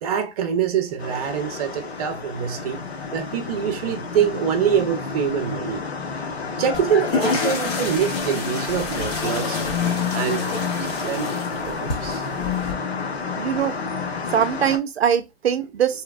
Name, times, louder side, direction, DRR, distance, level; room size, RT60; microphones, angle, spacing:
voice 1, 0.0-2.8 3.1-5.8 6.6-9.6 10.1-10.5 11.0-11.3 11.7-12.3, right 8 dB, 40° right, 0.6 m, -25 dB
sound 1, 1.0-14.8, left 5 dB, 85° left, 0.8 m, -29 dB
sound 2, 6.7-12.7, left 3 dB, 40° left, 0.8 m, -29 dB
voice 2, 13.4-13.8 14.3-16.0, right 8 dB, 80° right, 0.5 m, -22 dB
2.8 x 2.1 x 2.3 m
hypercardioid pair, 135°, 31 cm